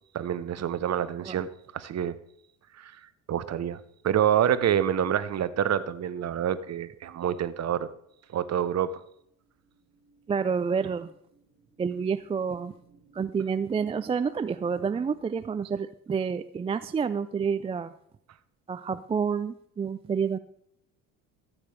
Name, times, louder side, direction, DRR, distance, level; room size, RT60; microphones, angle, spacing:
voice 1, 0.1-2.2 2.8-2.9 3.3-7.9 8.3-9.0, right 9 dB, 40° right, 14 dB, 0.9 m, -27 dB
sound 1, 8.0-15.3, right 4 dB, 65° right, 1.8 m, -59 dB
voice 2, 10.3-11.1 11.8-12.7 13.1-17.9 18.7-20.4, right 6 dB, 15° right, 12 dB, 0.3 m, -29 dB
14.5 x 8.9 x 3.3 m, 0.72 s
hypercardioid pair, 60°, 40 cm